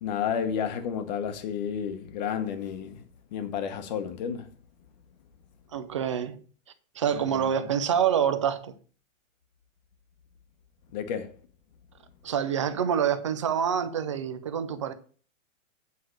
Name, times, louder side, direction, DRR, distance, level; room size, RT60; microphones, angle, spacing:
voice 1, 0.0-3.0 3.3-4.5 7.1-7.5 10.9-11.3, left 7 dB, 35° left, 1.0 m, -31 dB
voice 2, 5.7-6.4 7.0-8.7 12.2-14.9, right 8 dB, 25° right, 0.4 m, -26 dB
8.4 x 4.6 x 6.4 m
hypercardioid pair, 165°, 41 cm